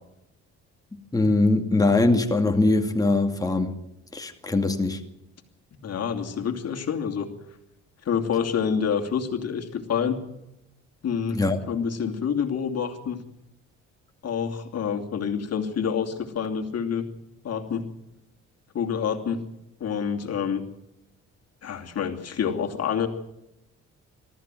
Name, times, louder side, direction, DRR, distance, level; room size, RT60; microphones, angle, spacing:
voice 1, 0.9-3.8 4.1-5.0 11.3-11.6, left 2 dB, 10° left, 4 dB, 2.3 m, -22 dB
voice 2, 5.8-7.3 8.0-10.2 11.0-11.4 11.7-13.2 14.2-17.1 17.4-17.8 18.7-19.4 19.8-20.6 21.6-23.1, left 7 dB, 55° left, 4 dB, 2.8 m, -27 dB
23.0 x 14.0 x 9.2 m, 0.85 s
cardioid pair, 90°, 30 cm